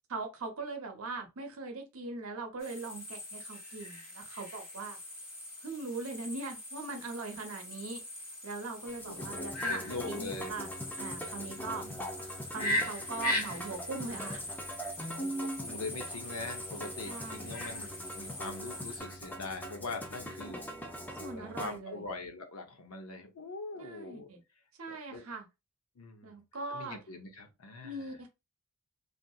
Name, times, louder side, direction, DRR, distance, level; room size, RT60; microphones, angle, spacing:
voice 1, 0.1-5.0 5.6-8.0 8.4-10.7 11.0-11.9 12.5-14.6 17.1-17.6 20.1-20.6 21.2-22.1 23.8-24.4 24.8-25.4 26.2-27.0 27.8-28.3, right 3 dB, 75° right, 0.7 m, -41 dB
sound 1, 2.6-19.0, left 1 dB, 60° left, 1.5 m, -40 dB
Musical instrument, 8.9-21.8, equal, 10° left, 0.4 m, -42 dB
voice 2, 9.1-10.6 11.5-12.2 15.0-20.6 21.3-24.3 24.9-25.2 26.0-26.4 26.7-27.9, left 3 dB, 90° left, 0.7 m, -43 dB
2.7 x 2.4 x 2.3 m
head